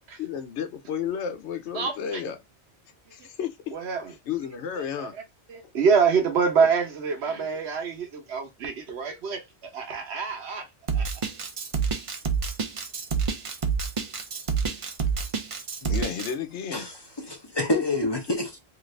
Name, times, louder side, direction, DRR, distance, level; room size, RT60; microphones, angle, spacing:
voice 1, 0.2-2.4 3.1-3.8 4.1-5.1 6.6-6.7 15.9-16.9 17.3-17.4 17.7-17.8, left 8 dB, 85° left, 0.9 m, -32 dB
voice 2, 1.7-2.2 3.7-4.1 4.8-4.9 5.5-9.4 9.7-10.6 10.9-11.1, right 5 dB, 70° right, 1.2 m, -25 dB
Drum kit, 10.9-16.3, right 6 dB, 40° right, 0.5 m, -27 dB
voice 3, 16.7-18.6, left 2 dB, 30° left, 0.5 m, -28 dB
2.9 x 2.5 x 3.1 m
omnidirectional pair, 1.1 m